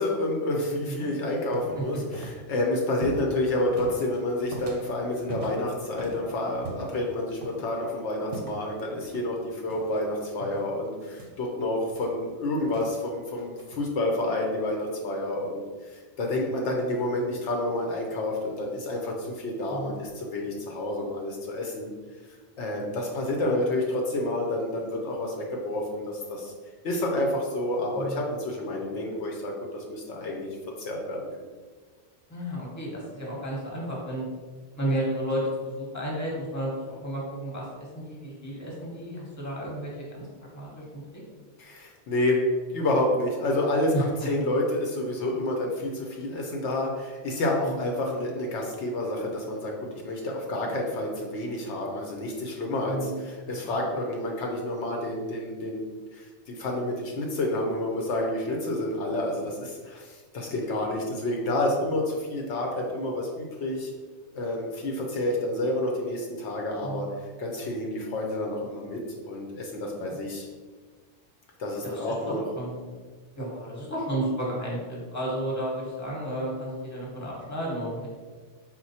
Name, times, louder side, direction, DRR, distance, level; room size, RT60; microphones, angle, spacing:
voice 1, 0.0-21.9 22.6-26.5 26.8-30.5 30.8-31.5 41.6-42.4 42.7-44.0 44.3-55.8 56.1-63.9 64.3-70.5 71.6-72.4, left 1 dB, 75° left, 0 dB, 0.9 m, -29 dB
sound 1, 1.3-7.7 8.3-8.7 9.0-9.3 9.7-10.0 10.4-13.1 13.4-13.9 14.6-14.7 17.8-19.0 19.7-20.1, right 2 dB, 85° right, 0.9 m, -42 dB
voice 2, 28.0-28.3 32.3-34.2 34.8-40.3 40.5-41.0 43.9-44.0 47.6-47.9 52.8-53.2 66.8-67.1 69.9-70.2 71.8-71.9 72.3-72.9 73.3-78.1, right 1 dB, 15° left, -4 dB, 1.0 m, -32 dB
4.3 x 2.2 x 4.1 m, 1.4 s
omnidirectional pair, 1.2 m